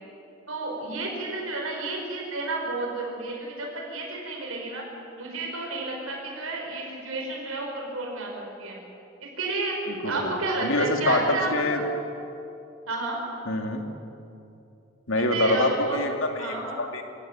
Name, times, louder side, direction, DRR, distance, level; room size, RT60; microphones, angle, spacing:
voice 1, 0.5-4.8 5.2-8.8 9.4-9.8 10.0-11.8 12.9-13.2 15.3-16.0 16.3-16.8, right 2 dB, 80° right, -1 dB, 5.4 m, -31 dB
voice 2, 9.9-11.8 13.5-13.8 15.1-17.0, left 2 dB, 70° left, 4 dB, 2.5 m, -26 dB
24.5 x 16.0 x 8.7 m, 2.8 s
head